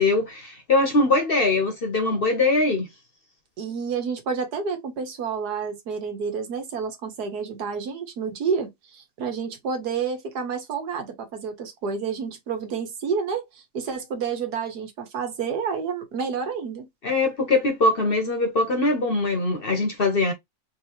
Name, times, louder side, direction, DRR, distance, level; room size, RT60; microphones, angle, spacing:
voice 1, 0.0-2.9 17.0-20.3, left 2 dB, 45° left, 0.9 m, -22 dB
voice 2, 3.6-16.9, right 6 dB, 80° right, 1.7 m, -29 dB
3.7 x 2.8 x 2.9 m
omnidirectional pair, 1.7 m